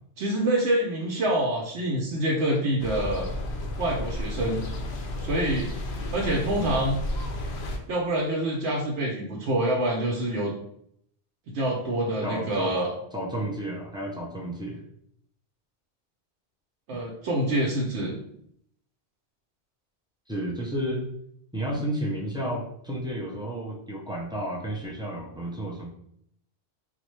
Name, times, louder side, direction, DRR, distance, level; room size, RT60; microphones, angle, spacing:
voice 1, 0.2-3.3 3.8-4.6 5.2-5.7 6.1-7.0 7.9-10.5 11.5-12.9 16.9-18.1, right 1 dB, 85° right, -3 dB, 0.9 m, -26 dB
sound 1, 2.8-7.8, left 1 dB, 75° left, 0.8 m, -32 dB
voice 2, 12.2-12.7 13.1-14.8 20.3-21.1 21.5-25.9, right 1 dB, 5° right, -2 dB, 0.3 m, -32 dB
3.7 x 2.1 x 3.1 m, 0.70 s
omnidirectional pair, 1.1 m